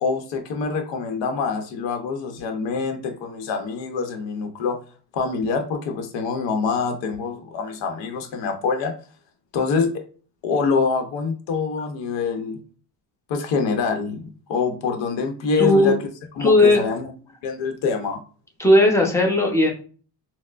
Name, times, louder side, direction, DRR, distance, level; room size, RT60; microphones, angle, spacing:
voice 1, 0.0-4.8 5.1-8.9 9.5-10.0 10.4-12.6 13.3-16.0 16.4-17.1 17.4-18.2, left 5 dB, 80° left, 5 dB, 0.8 m, -25 dB
voice 2, 15.6-15.9 16.4-16.8 18.6-19.7, left 1 dB, 5° left, 0 dB, 0.7 m, -16 dB
4.3 x 2.0 x 2.4 m, 0.40 s
cardioid pair, 125°, 43 cm